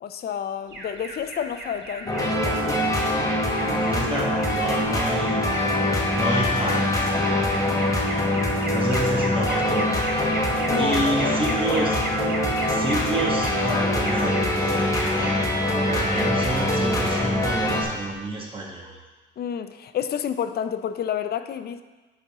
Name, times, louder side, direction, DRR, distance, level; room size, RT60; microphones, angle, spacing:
voice 1, 0.0-2.7 10.7-11.6 19.4-21.8, left 8 dB, 55° left, 11 dB, 0.5 m, -30 dB
Alarm, 0.7-18.3, right 2 dB, 65° right, 2.0 m, -36 dB
sound 1, 2.1-17.8, left 1 dB, 15° left, 1.3 m, -23 dB
voice 2, 3.6-5.4 6.1-8.2 8.7-10.2 10.8-12.0 12.7-15.5 15.9-19.0, right 1 dB, 25° right, -2 dB, 1.6 m, -30 dB
9.8 x 4.3 x 3.7 m, 1.2 s
cardioid pair, 90°, 20 cm